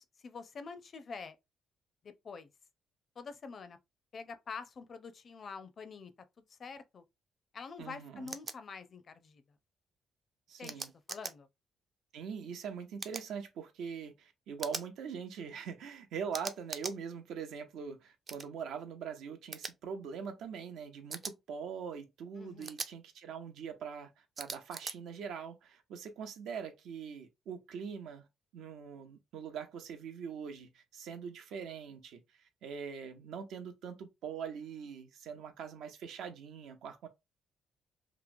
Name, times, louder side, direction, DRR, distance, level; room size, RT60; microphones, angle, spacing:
voice 1, 0.0-1.4 2.0-2.5 3.2-3.8 4.1-6.1 6.5-7.0 7.5-9.4 10.6-10.8 11.1-11.5 22.4-22.7, left 5 dB, 50° left, 0.5 m, -46 dB
voice 2, 7.8-8.3 10.5-10.9 12.1-28.3 28.5-37.1, right 6 dB, 80° right, 0.6 m, -43 dB
sound 1, 8.3-8.5 10.6-11.3 13.0-13.3 14.6-14.9 16.3-17.0 18.3-18.5 19.5-19.7 21.1-21.3 22.6-22.9 24.4-24.9, right 4 dB, 40° right, 0.4 m, -41 dB
2.9 x 2.2 x 2.5 m
cardioid pair, 90°, 0 cm